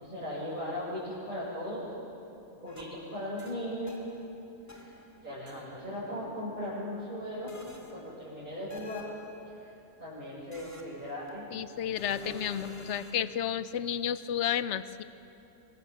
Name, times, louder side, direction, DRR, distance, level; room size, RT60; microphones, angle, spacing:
voice 1, 0.0-1.9 2.6-3.9 4.8-7.6 7.9-9.1 9.4-9.7 10.0-11.5 12.0-12.3, left 1 dB, 40° right, -10 dB, 6.4 m, -38 dB
sound 1, 2.7-4.3 4.7-5.6 7.5-8.1 8.7-9.5 10.5-11.4 12.0-13.1, equal, 10° left, 2.2 m, -48 dB
voice 2, 11.5-15.0, left 10 dB, 65° left, 14 dB, 1.0 m, -32 dB
24.5 x 22.5 x 7.4 m, 2.8 s
omnidirectional pair, 1.3 m